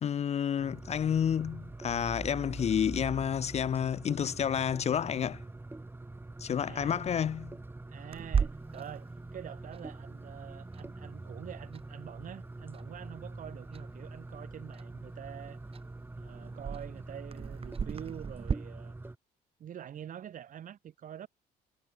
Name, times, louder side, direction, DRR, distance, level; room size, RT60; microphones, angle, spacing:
voice 1, 0.0-5.4 6.4-7.6, left 8 dB, 40° left, 0.7 m, -30 dB
sound 1, 0.6-19.2, right 2 dB, 15° right, 6.1 m, -44 dB
voice 2, 6.6-7.0 7.9-15.6 16.1-18.9 19.6-21.3, right 9 dB, 50° right, 2.9 m, -46 dB
Clock, 8.1-18.5, right 6 dB, 35° right, 1.8 m, -39 dB
cardioid pair, 110°, 17 cm